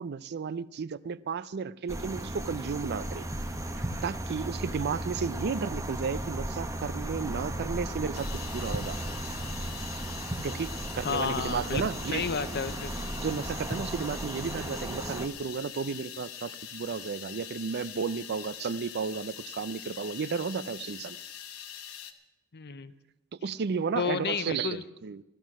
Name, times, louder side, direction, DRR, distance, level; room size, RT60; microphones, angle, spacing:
voice 1, 0.0-3.3 3.7-9.0 10.2-12.3 13.2-21.2 23.3-25.2, right 5 dB, 50° right, 0.4 m, -33 dB
sound 1, 1.9-15.3, right 1 dB, 15° right, 0.9 m, -35 dB
sound 2, 8.1-22.1, left 9 dB, 75° left, 1.1 m, -43 dB
voice 2, 11.0-11.8 12.1-12.9 22.5-22.9 23.9-24.8, left 5 dB, 50° left, 0.8 m, -31 dB
15.0 x 13.0 x 5.9 m
head